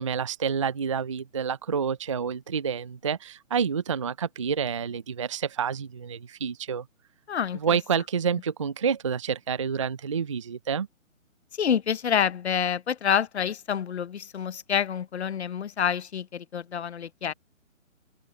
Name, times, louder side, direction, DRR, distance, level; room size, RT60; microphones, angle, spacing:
voice 1, 0.0-6.9 7.6-10.9, right 6 dB, 25° right, 0.5 m, -28 dB
voice 2, 7.3-7.6 11.6-17.3, left 8 dB, 55° left, 1.0 m, -27 dB
open air
figure-of-eight pair, 145°, 39 cm